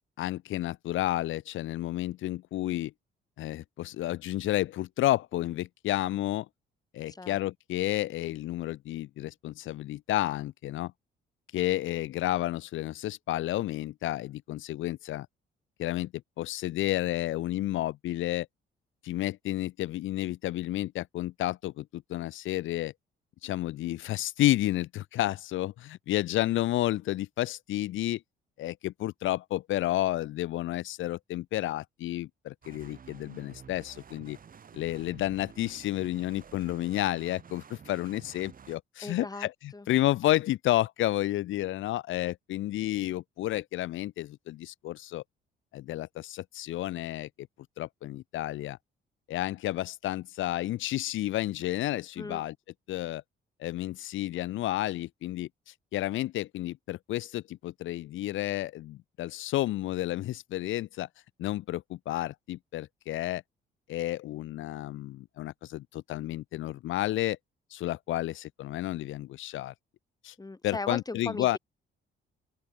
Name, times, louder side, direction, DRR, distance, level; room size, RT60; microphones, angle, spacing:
voice 1, 0.2-2.9 3.4-6.5 6.9-10.9 11.5-15.3 15.8-16.1 16.4-18.5 19.0-22.9 23.4-28.2 28.6-34.4 34.7-39.5 39.9-45.2 45.7-47.3 47.8-48.8 49.3-52.5 52.9-53.2 53.6-61.1 61.4-63.4 63.9-67.4 67.7-69.7 70.2-70.3 70.6-71.6, left 15 dB, 80° left, 1.0 m, -31 dB
sound 1, 32.6-38.8, right 7 dB, 45° right, 2.9 m, -51 dB
voice 2, 39.0-39.9 52.2-52.4 70.4-71.6, left 3 dB, 20° left, 4.2 m, -38 dB
cardioid pair, 90°, 20 cm